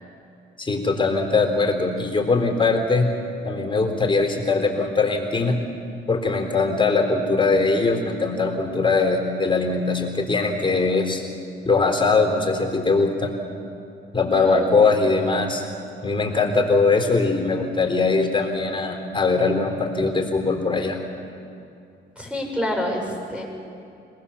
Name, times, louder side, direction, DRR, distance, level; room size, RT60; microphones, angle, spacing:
voice 1, 0.6-3.1 3.4-5.6 6.1-11.2 11.7-13.4 14.1-15.6 16.0-21.0, left 3 dB, 25° left, 2 dB, 3.8 m, -21 dB
voice 2, 14.3-14.9 22.2-23.4, left 1 dB, 5° right, 0 dB, 7.0 m, -28 dB
26.0 x 19.5 x 7.2 m, 2.6 s
cardioid pair, 90°, 20 cm